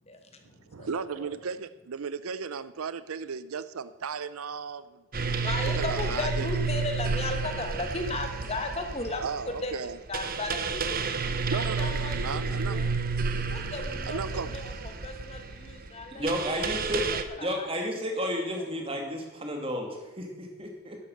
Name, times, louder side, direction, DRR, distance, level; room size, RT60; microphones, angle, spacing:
voice 1, 0.0-1.3 5.4-11.0 11.5-12.9 13.5-18.3 18.5-18.6, left 2 dB, 30° left, 5 dB, 1.4 m, -36 dB
voice 2, 0.7-5.3 5.7-6.5 9.2-10.0 11.5-12.8 14.1-14.5, right 5 dB, 80° right, 14 dB, 0.6 m, -35 dB
sound 1, 5.1-17.2, right 4 dB, 40° right, 0.9 m, -31 dB
voice 3, 16.1-17.0 17.4-21.0, equal, 25° right, 2 dB, 2.5 m, -32 dB
11.5 x 11.5 x 6.6 m, 1.2 s
head